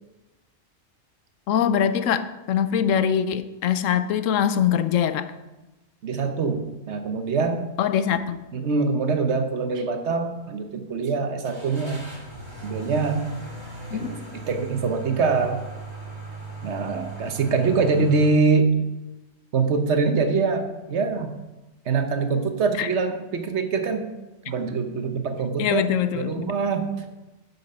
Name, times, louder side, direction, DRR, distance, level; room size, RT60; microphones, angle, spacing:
voice 1, 1.5-5.3 7.8-8.4 13.9-14.1 22.8-22.9 25.6-26.5, left 8 dB, 80° left, 12 dB, 1.0 m, -23 dB
voice 2, 6.0-7.6 8.5-12.1 12.6-13.3 13.9-14.2 14.5-15.6 16.6-18.7 19.5-21.3 21.9-24.1 24.5-25.8 26.1-27.1, right 4 dB, 60° right, 7 dB, 1.1 m, -24 dB
sound 1, 8.3-8.4 8.8-8.9 11.4-18.3, right 4 dB, 20° right, 3.4 m, -38 dB
7.9 x 7.0 x 5.3 m, 1.1 s
omnidirectional pair, 1.3 m